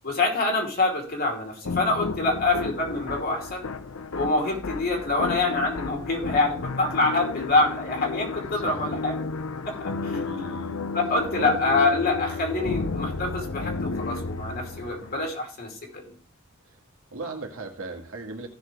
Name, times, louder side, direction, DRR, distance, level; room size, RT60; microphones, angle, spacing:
voice 1, 0.0-3.6 4.1-9.1 9.6-10.3 10.9-16.0, left 2 dB, 50° left, 2 dB, 2.8 m, -26 dB
sound 1, 1.6-15.3, left 3 dB, 75° left, 0.7 m, -33 dB
voice 2, 8.5-9.0 10.2-10.9 11.4-12.0 16.7-16.8 17.1-18.5, right 2 dB, 70° right, 2 dB, 2.0 m, -37 dB
15.5 x 6.1 x 3.3 m, 0.42 s
head